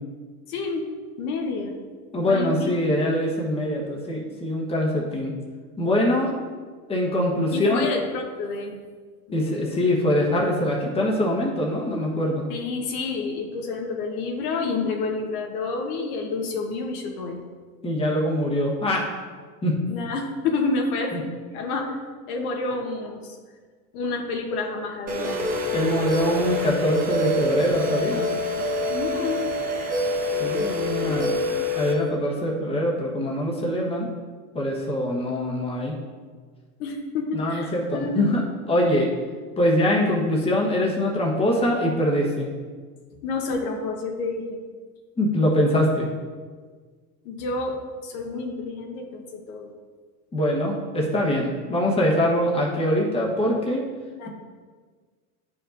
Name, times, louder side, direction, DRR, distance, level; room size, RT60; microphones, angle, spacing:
voice 1, 0.5-0.9 1.2-1.7 2.3-2.8 7.5-8.8 9.3-9.7 12.5-17.4 19.9-21.3 21.5-22.0 22.3-23.3 23.9-25.5 28.9-29.4 31.0-31.5 36.8-38.3 43.2-44.6 47.2-49.7 54.2-54.3, left 3 dB, 65° left, 2 dB, 1.2 m, -29 dB
voice 2, 2.1-5.3 5.8-6.3 6.9-7.9 9.3-12.5 17.8-19.1 19.6-19.8 25.7-28.3 30.4-31.3 31.7-34.1 34.5-35.9 37.3-38.4 38.7-39.1 39.6-42.5 45.2-46.1 50.3-53.8, left 1 dB, 10° left, -3 dB, 1.2 m, -23 dB
sound 1, 25.1-31.9, left 1 dB, 20° right, 0.7 m, -26 dB
9.7 x 4.9 x 2.6 m, 1.5 s
supercardioid pair, 125°, 46 cm